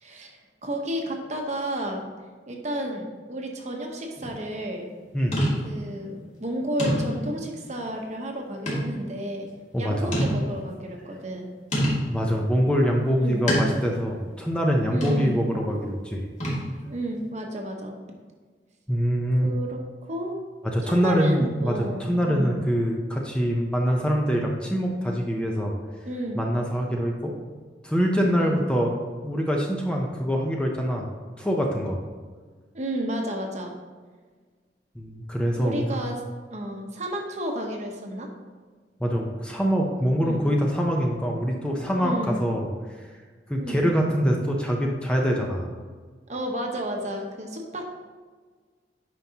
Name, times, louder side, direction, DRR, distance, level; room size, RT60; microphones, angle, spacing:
voice 1, 0.0-2.0 2.5-4.9 5.6-9.5 9.8-11.5 13.2-13.4 14.9-15.4 16.8-18.0 19.4-20.4 20.8-22.6 26.0-26.4 28.2-28.6 32.7-33.7 35.5-36.2 36.5-38.3 40.2-40.4 41.9-42.4 43.6-43.9 46.3-47.9, right 1 dB, 40° right, 1 dB, 1.0 m, -32 dB
sound 1, 4.2-4.4 5.3-5.9 6.4-6.5 6.8-7.4 8.7-9.0 9.5-9.6 10.1-10.7 11.7-12.2 13.5-14.0 15.0-15.4 16.4-16.9, equal, 45° left, 2.1 m, -26 dB
voice 2, 9.7-10.1 12.1-16.2 18.9-19.5 20.6-25.7 26.3-27.3 27.8-28.9 29.2-31.1 31.4-32.0 34.9-36.0 39.0-42.7 43.5-45.7, equal, 5° left, 0 dB, 0.7 m, -24 dB
9.3 x 5.6 x 2.9 m, 1.5 s
head